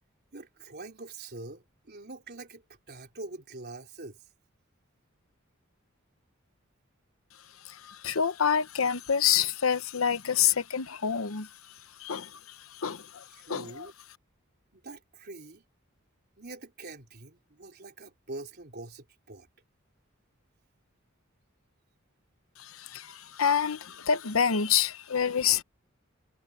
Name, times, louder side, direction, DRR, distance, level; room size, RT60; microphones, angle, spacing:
voice 1, 0.3-4.2 13.4-13.9 14.7-15.6 16.4-19.5, right 2 dB, 50° right, 3.7 m, -44 dB
voice 2, 7.7-11.5 12.0-12.3 12.8-13.2 13.5-13.9 22.6-25.6, left 8 dB, 85° left, 0.9 m, -27 dB
head